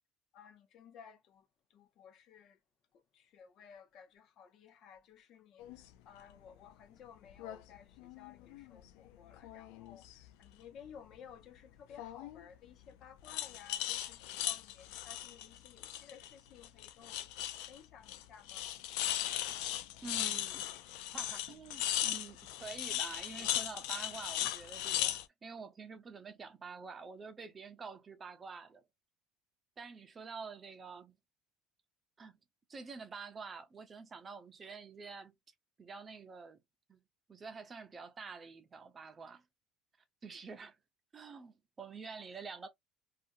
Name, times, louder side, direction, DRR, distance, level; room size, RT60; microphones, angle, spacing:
voice 1, 0.3-1.4 1.7-2.6 3.1-5.6 6.1-17.4 17.7-18.7, left 8 dB, 55° left, 0.7 m, -56 dB
sound 1, 5.6-5.8 7.3-7.6 8.0-8.9 9.3-10.3 12.0-12.4 13.2-16.3 16.6-17.8 18.1-18.2 18.5-25.2, left 13 dB, 80° left, 0.4 m, -38 dB
voice 2, 20.0-20.7 21.1-28.8 29.8-31.2 32.2-32.4 32.7-35.3 35.8-36.6 36.9-37.0 37.3-39.4 40.2-40.8 41.1-42.7, right 5 dB, 30° right, 0.6 m, -48 dB
2.7 x 2.4 x 2.6 m
supercardioid pair, 110°, 0 cm